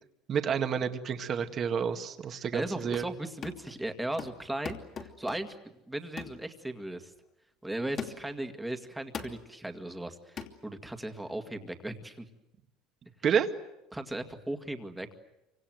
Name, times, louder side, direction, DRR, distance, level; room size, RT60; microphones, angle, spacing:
voice 1, 0.3-3.0 13.2-13.5, right 7 dB, 30° right, 7 dB, 1.8 m, -29 dB
voice 2, 2.3-5.5 5.9-7.1 7.6-12.3 13.9-15.2, right 1 dB, 5° right, 6 dB, 2.1 m, -37 dB
sound 1, 2.7-3.2 3.4-3.8 4.2-5.6 6.2-6.4 6.9-7.1 8.0-8.4 9.1-9.5 10.4-10.6, left 6 dB, 30° left, 2.8 m, -41 dB
28.0 x 25.5 x 7.9 m, 0.94 s
cardioid pair, 160°, 0 cm